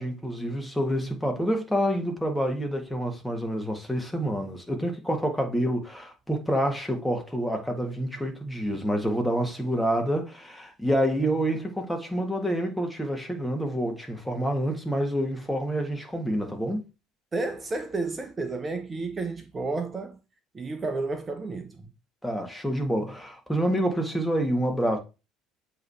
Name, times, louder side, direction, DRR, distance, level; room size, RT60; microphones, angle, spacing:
voice 1, 0.0-16.8 22.2-25.0, equal, 5° left, 1.8 m, -27 dB
voice 2, 17.3-20.2 20.5-21.9, right 3 dB, 25° right, 0.9 m, -31 dB
7.7 x 3.3 x 4.2 m
figure-of-eight pair, 60°, 0 cm